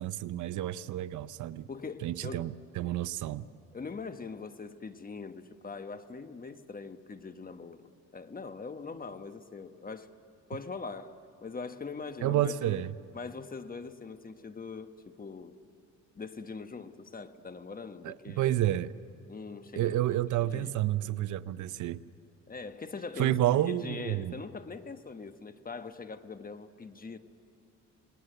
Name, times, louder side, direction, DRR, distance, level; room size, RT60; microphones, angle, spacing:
voice 1, 0.0-1.7 2.0-3.4 12.2-12.9 18.0-18.9 19.8-22.0 23.2-24.4, right 13 dB, 80° right, 0.7 m, -30 dB
voice 2, 1.7-2.5 2.8-2.9 3.7-10.1 10.5-12.8 13.1-15.6 16.1-18.6 19.3-20.0 20.4-20.8 22.5-27.2, left 4 dB, 30° left, 1.3 m, -42 dB
28.5 x 20.0 x 7.9 m
cardioid pair, 90°, 30 cm